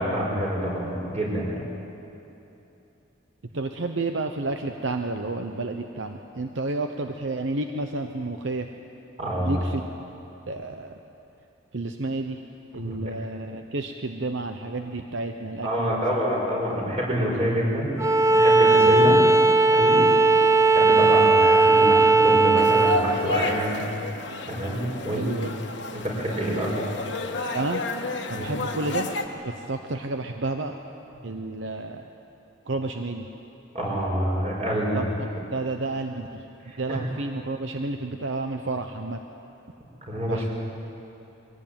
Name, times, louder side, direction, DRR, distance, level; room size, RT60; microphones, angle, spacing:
voice 1, 0.0-1.6 9.2-9.6 12.7-13.0 15.6-17.9 18.3-19.2 19.7-20.0 20.6-23.7 24.5-25.3 25.9-26.9 28.3-28.4 33.7-35.1 36.7-37.0 40.1-40.5, equal, 30° right, -3 dB, 5.5 m, -27 dB
voice 2, 3.5-8.7 9.4-9.9 10.5-10.9 11.7-12.4 12.7-16.0 25.1-25.5 27.5-27.8 28.3-29.1 29.4-30.8 31.2-32.1 32.7-33.3 34.9-39.2 40.3-40.5, right 2 dB, 65° right, 5 dB, 0.9 m, -31 dB
Bowed string instrument, 18.0-23.0, right 3 dB, 15° right, 0.6 m, -17 dB
sound 1, 22.6-29.3, left 2 dB, 60° left, 1.5 m, -31 dB
22.5 x 17.0 x 8.9 m, 2.9 s
head